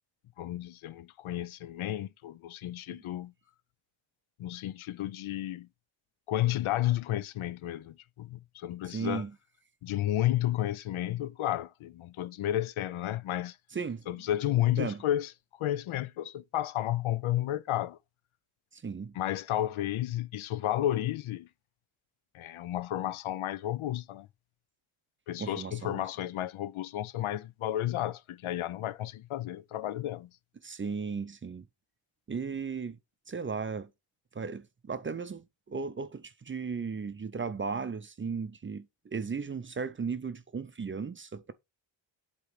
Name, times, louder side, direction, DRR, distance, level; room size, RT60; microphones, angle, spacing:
voice 1, 0.4-3.3 4.4-5.7 6.3-9.2 9.8-13.6 14.1-15.3 15.6-18.0 19.2-21.5 22.3-24.3 25.3-30.3, left 13 dB, 85° left, 0.6 m, -32 dB
voice 2, 8.8-9.3 13.7-14.1 14.7-15.0 18.7-19.2 25.4-26.0 30.6-31.7 32.3-33.0 33.3-33.9 34.3-41.5, right 5 dB, 25° right, 0.4 m, -36 dB
7.9 x 3.0 x 5.0 m
wide cardioid pair, 130°, 47 cm